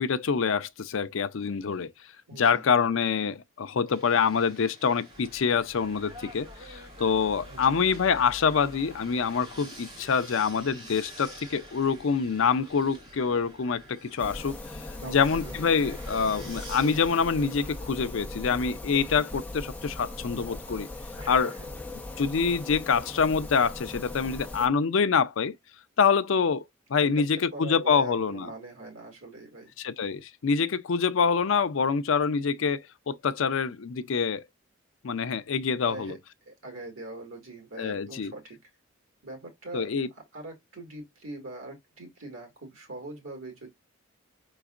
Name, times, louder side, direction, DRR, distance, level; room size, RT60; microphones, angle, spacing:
voice 1, 0.0-1.9 2.4-14.6 15.0-20.9 21.3-21.5 22.2-25.5 26.0-26.6 26.9-28.5 29.8-34.4 35.0-36.2 37.8-38.3 39.7-40.1, left 6 dB, 70° left, 0.5 m, -26 dB
voice 2, 2.3-2.7 7.5-7.8 15.0-15.5 21.2-21.7 27.0-29.7 35.8-38.6 39.2-43.7, right 2 dB, 80° right, 2.1 m, -42 dB
sound 1, 3.9-17.9, equal, 20° right, 1.7 m, -49 dB
sound 2, 5.1-18.7, equal, 45° right, 3.0 m, -52 dB
sound 3, 14.2-24.7, left 2 dB, 5° left, 0.7 m, -39 dB
5.0 x 3.9 x 2.4 m
head